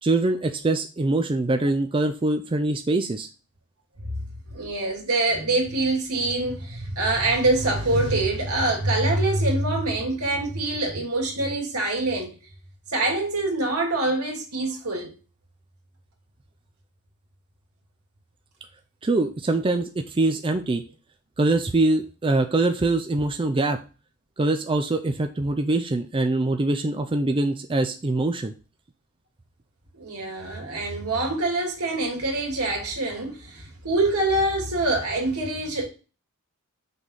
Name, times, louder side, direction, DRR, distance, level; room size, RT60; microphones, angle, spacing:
voice 1, 0.0-3.3 19.0-20.8 21.4-23.8 24.4-28.5, right 2 dB, 25° right, 0.4 m, -23 dB
voice 2, 4.5-12.4 12.9-15.1 29.9-35.9, right 2 dB, 75° right, 2.4 m, -25 dB
6.1 x 3.5 x 5.5 m
head